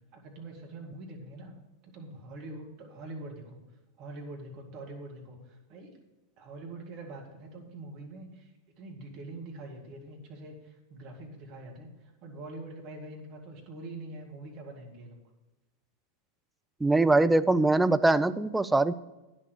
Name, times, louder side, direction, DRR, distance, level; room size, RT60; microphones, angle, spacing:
voice 1, 0.1-1.5 1.8-3.6 4.0-5.9 6.4-15.2, right 2 dB, 40° right, 1 dB, 2.2 m, -44 dB
voice 2, 16.8-18.9, right 2 dB, 5° right, 11 dB, 0.4 m, -22 dB
10.0 x 6.7 x 6.6 m, 1.1 s
figure-of-eight pair, 90°, 0 cm